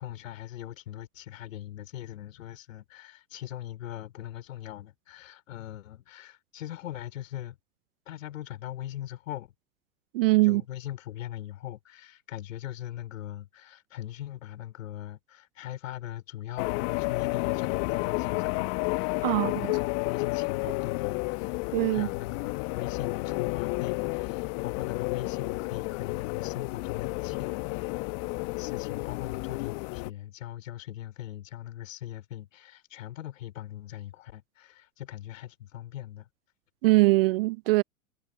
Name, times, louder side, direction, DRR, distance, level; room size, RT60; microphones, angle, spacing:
voice 1, 0.0-7.6 8.1-9.5 10.4-27.9 28.6-36.3, left 13 dB, 60° left, 3.7 m, -40 dB
voice 2, 10.1-10.6 19.2-19.7 21.7-22.1 36.8-37.8, right 22 dB, 40° right, 0.6 m, -22 dB
sound 1, 16.6-30.1, left 33 dB, 40° left, 1.2 m, -31 dB
figure-of-eight pair, 100°, 43 cm